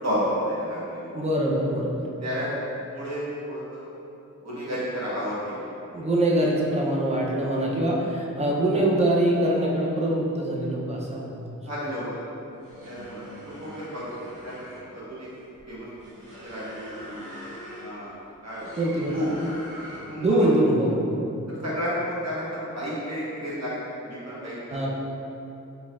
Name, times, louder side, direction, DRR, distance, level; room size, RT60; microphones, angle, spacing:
voice 1, 0.0-1.1 2.2-2.5 2.9-3.8 4.4-6.1 6.4-6.5 11.1-12.2 12.8-14.1 14.4-15.3 15.7-15.9 16.4-17.2 17.8-18.1 18.4-18.7 19.1-19.4 20.0-20.5 21.5-24.9, equal, 55° right, -8 dB, 1.3 m, -32 dB
voice 2, 1.1-2.0 5.9-11.6 18.8-19.2 20.2-21.2 24.7-24.9, right 1 dB, 20° right, -3 dB, 0.6 m, -24 dB
sound 1, 12.5-20.3, equal, 90° right, 1.0 m, -43 dB
4.3 x 3.3 x 2.4 m, 2.8 s
wide cardioid pair, 60°, 32 cm